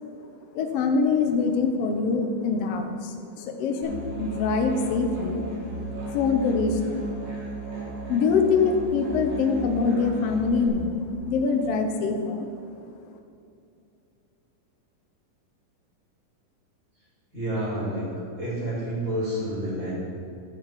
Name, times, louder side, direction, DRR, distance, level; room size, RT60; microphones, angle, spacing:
voice 1, 0.5-5.4 6.1-7.0 8.1-12.5, left 5 dB, 90° left, 4 dB, 1.3 m, -24 dB
Musical instrument, 3.8-10.7, right 2 dB, 75° right, 4.2 m, -35 dB
voice 2, 17.3-18.0 18.4-19.9, right 1 dB, 25° right, -7 dB, 2.7 m, -29 dB
11.0 x 5.0 x 7.2 m, 2.5 s
omnidirectional pair, 3.9 m